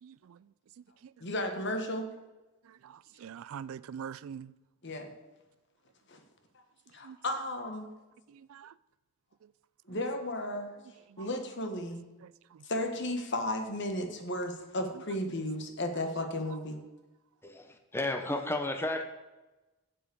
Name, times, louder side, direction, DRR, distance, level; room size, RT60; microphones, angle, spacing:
voice 1, 0.0-1.3 2.6-4.5 7.0-7.2 8.3-8.7 9.4-9.5 9.9-10.1 11.1-11.3 12.2-12.7 14.9-15.0 16.5-16.6, right 8 dB, 70° right, 0.3 m, -46 dB
voice 2, 1.2-2.1 4.8-5.1 6.1-6.2 6.9-7.9 9.9-10.7 11.2-12.0 12.6-16.8, left 1 dB, 50° left, 1.4 m, -34 dB
voice 3, 17.4-19.0, left 2 dB, 10° left, 0.8 m, -33 dB
8.1 x 7.7 x 6.9 m
head